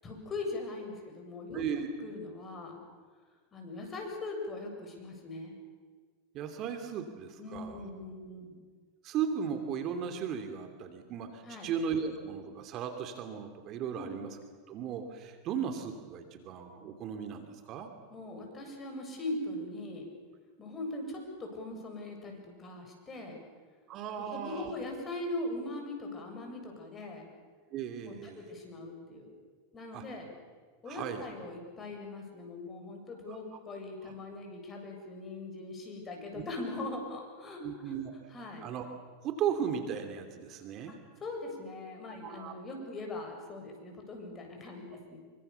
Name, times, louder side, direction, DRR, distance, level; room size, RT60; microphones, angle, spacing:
voice 1, 0.0-1.6 2.0-2.8 3.5-5.6 7.4-8.6 11.4-11.7 13.9-14.1 18.1-20.1 20.6-23.4 24.2-27.2 28.1-29.3 29.7-30.3 30.8-37.9 38.3-38.6 40.9-45.2, left 2 dB, 25° left, 2 dB, 7.7 m, -41 dB
voice 2, 1.5-1.9 6.3-7.8 9.0-14.3 14.7-17.9 23.9-24.7 27.7-28.5 29.9-30.0 30.9-31.2 33.5-33.6 34.0-34.1 36.3-36.4 37.6-38.1 38.6-38.8 39.2-41.0 42.2-42.5, right 7 dB, 45° right, 6 dB, 3.0 m, -36 dB
26.5 x 24.5 x 7.1 m, 1.5 s
hypercardioid pair, 115°, 0 cm